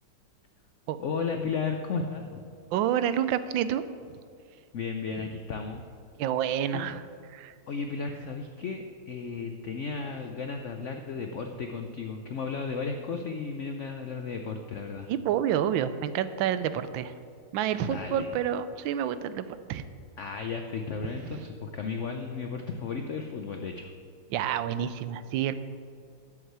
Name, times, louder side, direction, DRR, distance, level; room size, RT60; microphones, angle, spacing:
voice 1, 1.0-2.4 4.7-5.8 6.7-6.8 7.7-15.1 17.8-18.3 20.2-23.9, left 5 dB, 80° left, 5 dB, 0.6 m, -34 dB
voice 2, 2.7-3.8 6.2-7.0 7.3-7.5 15.1-17.1 17.5-19.8 21.1-21.4 24.3-25.5, right 10 dB, 80° right, 13 dB, 1.3 m, -29 dB
7.9 x 7.3 x 8.0 m, 2.3 s
omnidirectional pair, 2.1 m